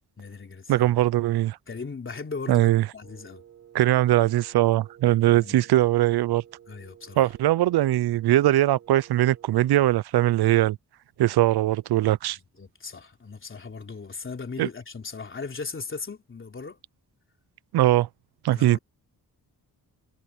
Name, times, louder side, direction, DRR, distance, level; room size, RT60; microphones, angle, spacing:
voice 1, 0.2-1.1 1.7-3.4 5.2-5.6 6.7-7.3 12.4-16.8 18.5-18.8, left 4 dB, 30° left, 3.3 m, -38 dB
voice 2, 0.7-1.6 2.5-2.9 3.7-6.4 7.2-10.8 11.2-12.4 14.6-14.7 17.7-18.1 18.4-18.8, right 14 dB, 80° right, 0.5 m, -21 dB
Wind instrument woodwind instrument, 3.0-9.7, right 9 dB, 40° right, 2.0 m, -52 dB
wide cardioid pair, 175°, 38 cm